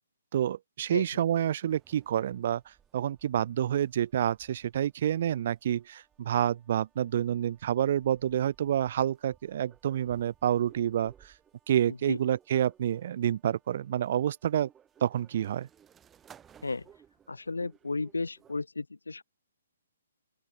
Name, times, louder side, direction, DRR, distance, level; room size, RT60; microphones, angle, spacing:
voice 1, 0.3-2.6 2.9-11.3 11.7-14.7 15.0-15.7, right 10 dB, 50° right, 0.7 m, -28 dB
sound 1, 1.7-18.6, right 8 dB, 15° right, 3.2 m, -61 dB
voice 2, 11.9-12.2 16.6-16.9 17.3-19.2, left 3 dB, 85° left, 0.9 m, -34 dB
open air
figure-of-eight pair, 135°, 0 cm